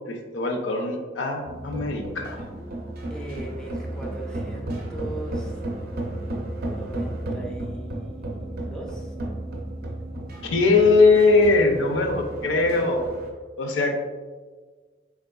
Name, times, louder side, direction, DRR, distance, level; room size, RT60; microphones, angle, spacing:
voice 1, 0.1-2.4 10.4-13.1 13.6-14.0, left 3 dB, 75° left, 4 dB, 0.4 m, -21 dB
sound 1, 1.5-13.3, right 1 dB, 55° right, 0.5 m, -33 dB
voice 2, 3.1-5.6 6.7-9.1, right 1 dB, 5° left, -1 dB, 0.4 m, -39 dB
3.5 x 3.0 x 2.3 m, 1.4 s
head